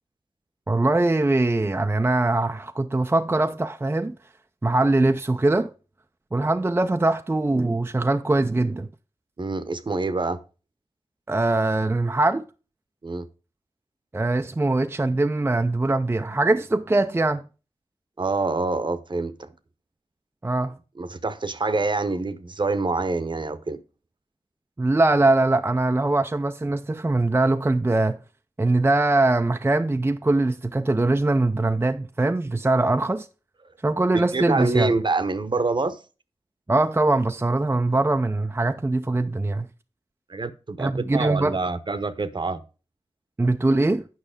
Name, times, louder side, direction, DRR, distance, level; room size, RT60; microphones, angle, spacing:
voice 1, 0.7-4.2 4.6-5.7 6.3-8.9 11.3-12.5 14.1-17.4 20.4-20.7 24.8-28.2 28.6-33.3 33.8-34.9 36.7-39.7 40.8-41.6 43.4-44.1, right 2 dB, 20° right, 0.4 m, -22 dB
voice 2, 9.4-10.4 13.0-13.3 18.2-19.5 21.0-23.8 34.1-36.0 40.3-42.6, right 3 dB, 45° right, 0.8 m, -26 dB
9.0 x 5.4 x 5.0 m
cardioid pair, 50°, 11 cm